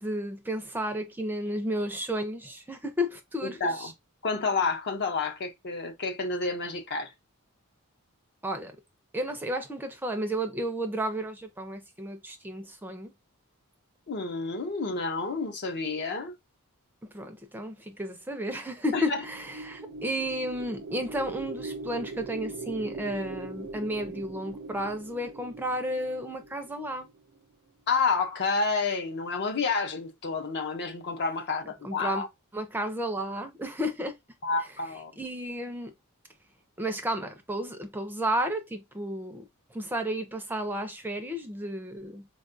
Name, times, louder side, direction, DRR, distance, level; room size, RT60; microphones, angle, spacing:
voice 1, 0.0-3.9 8.4-8.7 9.1-13.1 17.1-27.1 31.8-32.3 32.5-34.2 35.2-35.9 36.8-39.4 39.7-42.3, equal, 10° right, 0.4 m, -32 dB
voice 2, 3.4-3.9 4.2-7.1 14.1-16.3 18.9-19.2 27.9-32.3 34.4-35.1, left 4 dB, 50° left, 0.6 m, -29 dB
sound 1, 19.0-27.4, right 3 dB, 75° right, 0.4 m, -41 dB
4.4 x 2.3 x 2.5 m
head